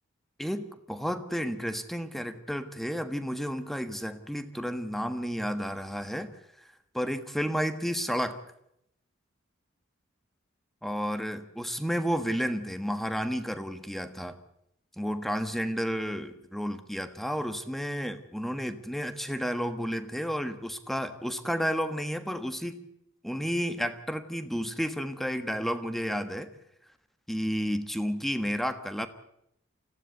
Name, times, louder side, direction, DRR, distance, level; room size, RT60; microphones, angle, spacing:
voice 1, 0.4-6.3 6.9-8.4 10.8-14.4 15.0-22.9 23.2-26.5 27.3-29.1, equal, ahead, 10 dB, 1.4 m, -31 dB
25.0 x 16.0 x 8.2 m, 0.79 s
head